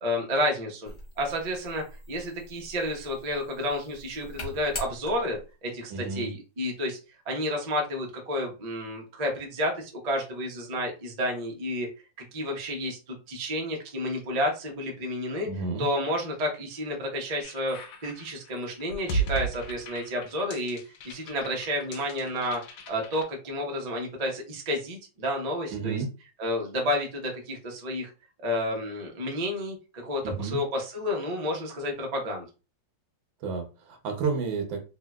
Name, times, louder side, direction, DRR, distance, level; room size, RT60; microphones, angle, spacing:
voice 1, 0.0-7.0 7.3-11.9 12.3-15.5 15.8-20.8 21.0-26.0 26.4-28.1 28.4-32.5, left 1 dB, 50° right, 1 dB, 0.4 m, -31 dB
sound 1, 0.8-5.5, left 1 dB, 40° left, 0.4 m, -43 dB
voice 2, 5.9-6.3 15.4-15.9 25.7-26.1 30.2-30.6 33.4-34.8, right 5 dB, 85° right, 5 dB, 1.6 m, -31 dB
sound 2, 17.4-23.2, right 3 dB, 85° left, 1.4 m, -35 dB
3.6 x 2.7 x 2.2 m, 0.31 s
omnidirectional pair, 2.1 m